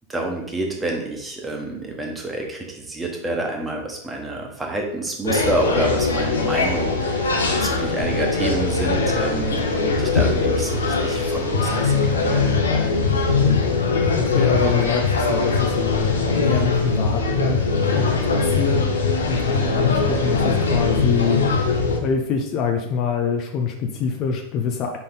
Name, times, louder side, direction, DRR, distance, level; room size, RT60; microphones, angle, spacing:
voice 1, 0.1-7.2 7.6-12.4, right 2 dB, 15° right, 1 dB, 1.3 m, -28 dB
sound 1, 5.3-22.0, left 4 dB, 70° left, 0.9 m, -21 dB
voice 2, 13.1-13.6 14.1-21.4 22.0-25.0, left 6 dB, 35° left, 4 dB, 0.6 m, -25 dB
5.0 x 4.2 x 5.3 m, 0.79 s
figure-of-eight pair, 90°, 0 cm